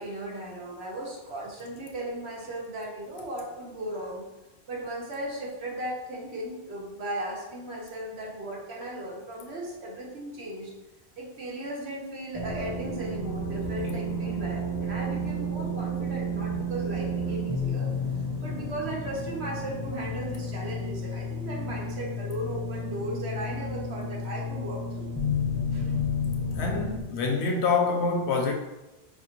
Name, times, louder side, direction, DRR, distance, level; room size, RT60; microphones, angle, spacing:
voice 1, 0.0-4.2 4.7-10.7 11.2-17.9 18.4-25.1 25.7-25.9, right 1 dB, 75° right, 1.2 m, -36 dB
sound 1, 12.3-27.0, left 1 dB, 20° left, 0.7 m, -31 dB
voice 2, 26.5-28.5, left 4 dB, 85° left, 0.9 m, -26 dB
4.7 x 2.4 x 2.9 m
omnidirectional pair, 1.1 m